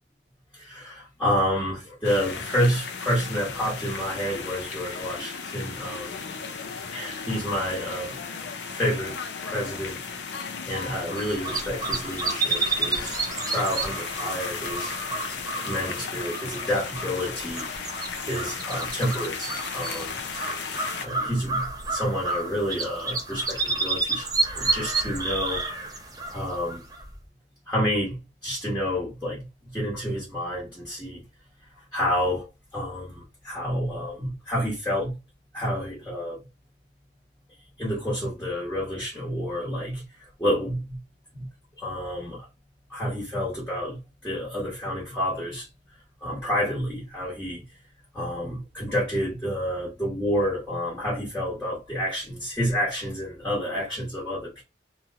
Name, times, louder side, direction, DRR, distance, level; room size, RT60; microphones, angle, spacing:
voice 1, 0.5-6.2 6.9-8.1 8.8-9.2 9.4-10.0 10.6-13.2 13.4-15.1 15.6-17.7 18.2-20.2 21.0-24.3 24.6-25.6 26.3-26.8 27.7-31.2 31.9-32.5 32.7-35.2 35.5-36.4 37.8-40.0 40.4-41.0 41.3-41.5 41.8-42.4 42.9-45.7 46.2-47.6 48.1-54.6, equal, 10° left, 1.1 m, -29 dB
sound 1, 2.0-21.1, left 5 dB, 75° left, 0.6 m, -35 dB
sound 2, 11.1-27.1, right 3 dB, 20° right, 0.6 m, -30 dB
2.9 x 2.8 x 2.4 m
head